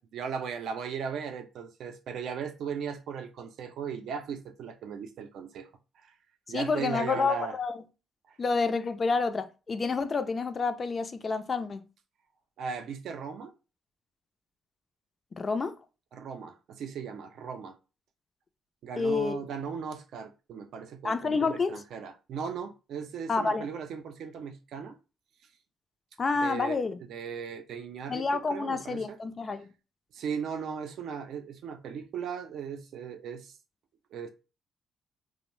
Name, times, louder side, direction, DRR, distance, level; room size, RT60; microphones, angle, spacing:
voice 1, 0.0-5.7 6.0-6.1 6.5-7.5 8.3-8.4 12.6-13.5 16.1-17.8 18.8-25.0 26.4-26.8 27.1-28.2 28.5-29.2 30.1-33.6 34.1-34.3, right 6 dB, 75° right, 0.4 m, -37 dB
voice 2, 6.5-7.8 8.4-11.8 15.3-15.7 19.0-19.3 21.0-21.8 23.3-23.7 26.2-27.0 28.1-29.7, left 4 dB, 40° left, 0.3 m, -29 dB
2.5 x 2.0 x 3.0 m
cardioid pair, 90°, 0 cm